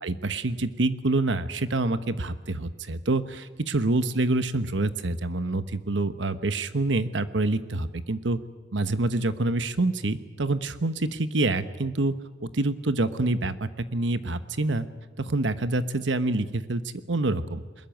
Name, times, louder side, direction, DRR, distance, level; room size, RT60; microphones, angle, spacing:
voice 1, 0.0-8.4 8.7-12.1 12.4-14.9 15.2-16.8 17.1-17.6, right 2 dB, 80° right, 12 dB, 1.1 m, -26 dB
22.5 x 20.5 x 9.2 m, 1.3 s
head